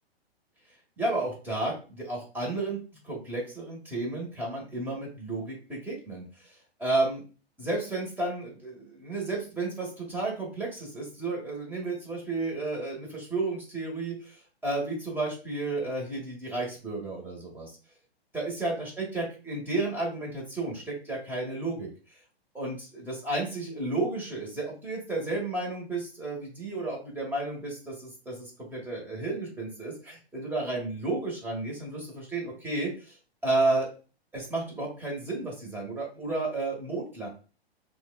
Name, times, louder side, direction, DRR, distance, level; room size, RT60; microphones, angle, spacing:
voice 1, 1.0-2.8 3.0-6.5 6.8-7.2 7.6-17.7 18.3-21.9 22.5-33.2 33.4-33.9 34.3-37.3, right 2 dB, 5° right, -3 dB, 1.8 m, -32 dB
5.7 x 2.7 x 2.5 m, 0.35 s
hypercardioid pair, 120°, 32 cm